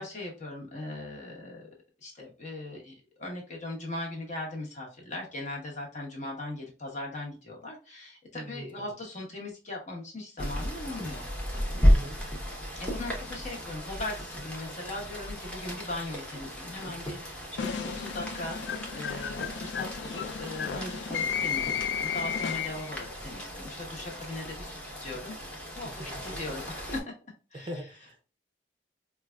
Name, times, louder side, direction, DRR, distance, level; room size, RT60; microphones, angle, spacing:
voice 1, 0.0-1.7 2.0-11.2 12.8-25.4 25.7-25.9 26.2-27.1 27.5-27.7, left 2 dB, 45° left, -1 dB, 1.1 m, -39 dB
voice 2, 8.3-8.9 11.8-12.2 25.8-26.1 27.5-28.2, equal, 30° right, 3 dB, 0.5 m, -41 dB
Rain, 10.4-27.0, equal, 10° left, 0.8 m, -33 dB
sound 1, 17.6-23.0, left 7 dB, 90° left, 0.4 m, -33 dB
4.7 x 2.3 x 2.2 m, 0.34 s
head